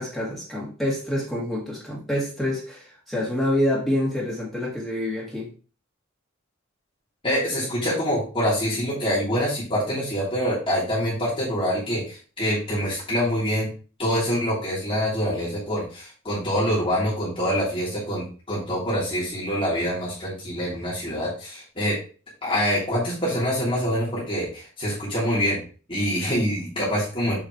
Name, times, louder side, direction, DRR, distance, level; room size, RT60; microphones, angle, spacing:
voice 1, 0.0-5.5, left 1 dB, ahead, -6 dB, 2.1 m, -27 dB
voice 2, 7.2-13.7 14.0-21.9 22.4-25.6 25.9-27.4, equal, 25° left, -9 dB, 2.9 m, -25 dB
7.2 x 4.9 x 3.2 m, 0.37 s
head